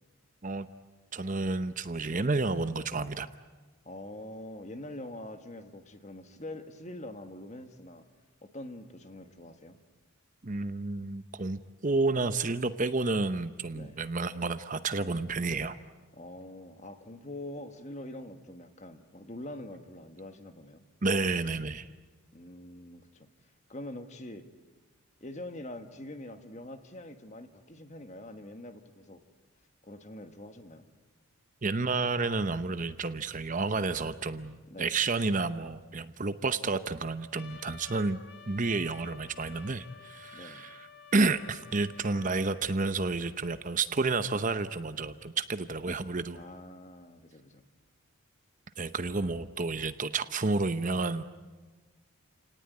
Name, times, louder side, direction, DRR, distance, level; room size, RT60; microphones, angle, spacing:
voice 1, 1.1-3.3 10.4-15.8 21.0-21.9 31.6-38.2 38.5-40.9 41.1-46.4 48.8-51.2, right 3 dB, 35° right, 11 dB, 0.8 m, -30 dB
voice 2, 2.1-2.4 3.8-8.0 8.4-9.8 13.7-14.0 16.1-20.8 22.3-23.3 23.7-24.4 25.2-29.2 29.8-30.9 34.7-35.0 40.3-40.7 46.3-47.6, left 1 dB, 30° left, 8 dB, 1.6 m, -44 dB
Trumpet, 37.3-42.7, left 5 dB, 50° left, 1.4 m, -51 dB
29.5 x 18.5 x 9.6 m, 1.3 s
head